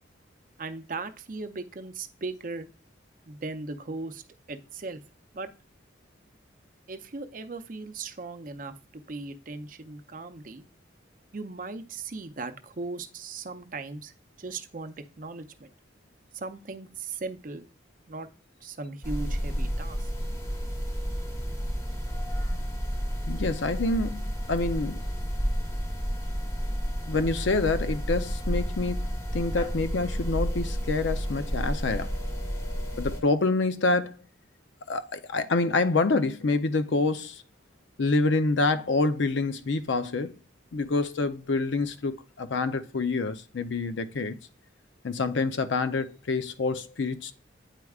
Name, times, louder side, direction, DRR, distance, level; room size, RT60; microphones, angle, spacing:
voice 1, 0.6-2.7 3.3-4.2 4.5-5.0 5.3-5.5 6.9-10.6 11.3-14.1 14.4-15.7 16.3-17.7 18.1-18.3 18.6-20.0, right 3 dB, 45° right, 0.5 m, -38 dB
sound 1, 19.0-33.2, equal, 15° left, 1.0 m, -31 dB
voice 2, 23.3-25.0 27.1-32.1 33.0-34.3 34.9-37.4 38.0-40.4 40.7-44.5 45.0-47.3, left 3 dB, 75° left, 0.5 m, -27 dB
9.0 x 4.7 x 2.3 m
head